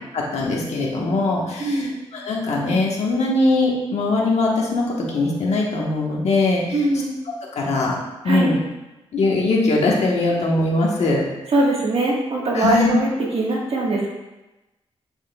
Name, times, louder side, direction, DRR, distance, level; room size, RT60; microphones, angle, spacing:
voice 1, 0.1-6.8 7.5-8.0 8.2-8.6 9.1-11.2 12.5-12.9, left 2 dB, 85° left, -2 dB, 1.3 m, -21 dB
voice 2, 1.6-2.0 6.7-7.1 8.2-8.5 11.5-14.1, right 2 dB, 65° right, -3 dB, 1.5 m, -21 dB
7.4 x 6.2 x 2.3 m, 1.0 s
wide cardioid pair, 160°, 11 cm